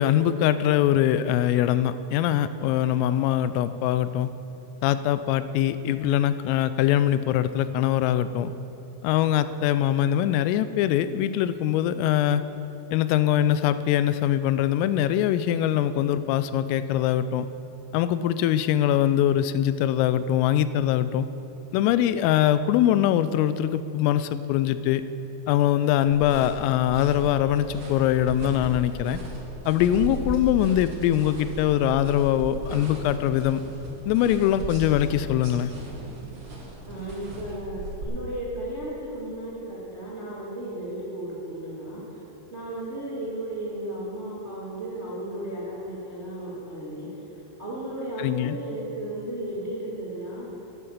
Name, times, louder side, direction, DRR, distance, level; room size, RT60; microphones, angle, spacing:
voice 1, 0.0-4.3 4.8-8.5 9.0-12.4 12.9-17.5 17.9-21.3 21.7-25.0 25.5-29.2 29.7-33.6 34.1-35.7 48.2-48.6, left 11 dB, 85° left, 13 dB, 3.2 m, -23 dB
sound 1, 26.0-38.0, right 1 dB, 50° right, 1.8 m, -37 dB
voice 2, 36.8-42.0 42.5-47.1 47.6-50.5, right 1 dB, 25° right, -7 dB, 1.4 m, -34 dB
12.0 x 11.0 x 7.4 m, 2.9 s
omnidirectional pair, 5.8 m